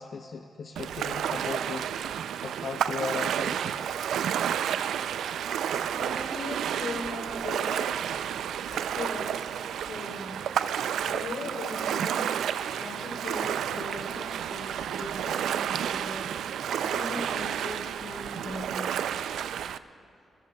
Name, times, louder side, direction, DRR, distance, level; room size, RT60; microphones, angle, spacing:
voice 1, 0.0-1.9 2.4-3.8 5.7-5.9, left 5 dB, 60° left, 6 dB, 0.5 m, -37 dB
Ocean, 0.8-19.8, right 9 dB, 85° right, 0.3 m, -31 dB
voice 2, 5.9-8.0 8.7-9.6 9.9-10.4 11.0-12.2 12.8-16.2 16.8-19.0, left 2 dB, 85° left, 0 dB, 3.2 m, -39 dB
21.0 x 20.5 x 2.3 m, 2.5 s
cardioid pair, 90°, 0 cm